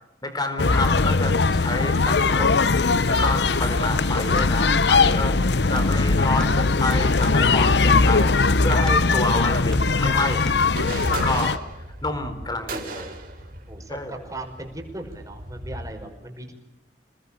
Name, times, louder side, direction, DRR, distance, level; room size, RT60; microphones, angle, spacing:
voice 1, 0.2-2.7 3.1-5.4 5.7-10.5 11.1-11.6 12.0-13.1 13.9-14.2, left 2 dB, 25° left, 8 dB, 4.4 m, -28 dB
sound 1, 0.6-11.6, left 3 dB, 65° left, 0.9 m, -20 dB
sound 2, 4.4-5.3 5.6-6.7 7.2-9.1 9.5-10.2 10.5-10.7, equal, 5° left, 1.7 m, -37 dB
sound 3, 10.6-15.9, right 2 dB, 50° right, 4.7 m, -37 dB
voice 2, 13.7-16.5, right 2 dB, 20° right, 4 dB, 5.4 m, -38 dB
28.5 x 20.0 x 8.9 m, 0.91 s
head